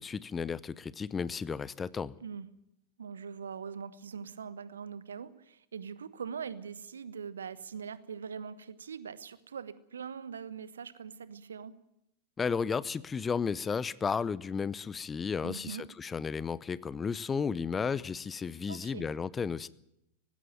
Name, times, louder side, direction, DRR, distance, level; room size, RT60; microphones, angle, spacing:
voice 1, 0.0-2.1 12.4-19.7, left 6 dB, 15° left, 0.7 m, -33 dB
voice 2, 3.0-11.7 15.4-15.8 18.7-19.0, right 6 dB, 70° right, 1.2 m, -42 dB
19.0 x 16.0 x 9.3 m
figure-of-eight pair, 90°, 0 cm